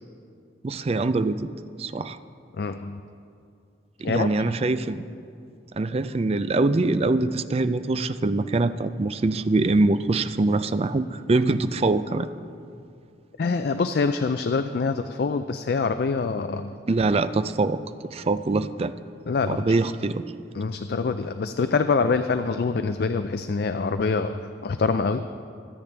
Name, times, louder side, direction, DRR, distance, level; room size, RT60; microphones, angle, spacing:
voice 1, 0.6-1.5 1.8-2.2 4.0-5.1 5.7-12.3 16.9-17.8 18.1-18.9 19.5-20.2, right 2 dB, 35° right, 12 dB, 0.4 m, -23 dB
voice 2, 2.5-3.0 4.0-4.3 13.4-16.8 19.3-19.6 20.5-25.2, left 4 dB, 55° left, 9 dB, 0.4 m, -25 dB
24.0 x 8.7 x 3.4 m, 2.4 s
head